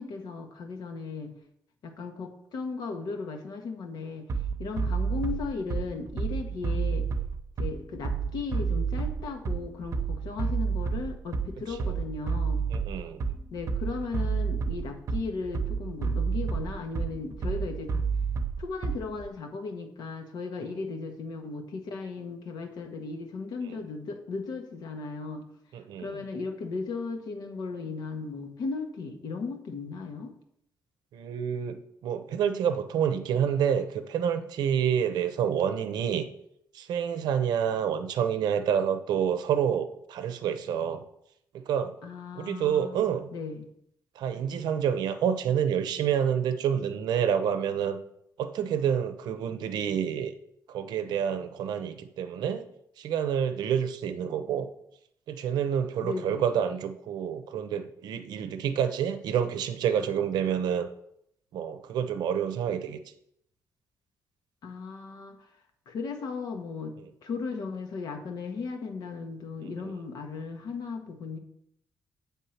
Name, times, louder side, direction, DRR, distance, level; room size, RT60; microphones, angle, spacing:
voice 1, 0.0-1.3 1.8-4.3 4.6-7.1 7.6-12.6 13.5-17.9 18.6-25.4 26.0-30.3 42.0-43.6 56.0-56.5 64.6-65.3 65.9-66.9 67.2-71.4, left 4 dB, 75° left, 4 dB, 1.0 m, -36 dB
Bass drum, 4.3-19.3, right 5 dB, 45° right, 0.7 m, -30 dB
voice 2, 12.7-13.2 20.7-20.8 25.7-26.2 31.1-36.3 36.7-41.0 41.5-41.9 42.3-43.3 44.2-48.0 48.4-50.3 50.7-52.6 53.0-54.7 55.3-60.9 61.5-63.0 69.6-69.9, right 8 dB, 90° right, 9 dB, 0.6 m, -28 dB
7.5 x 3.6 x 5.6 m, 0.74 s
cardioid pair, 110°, 7 cm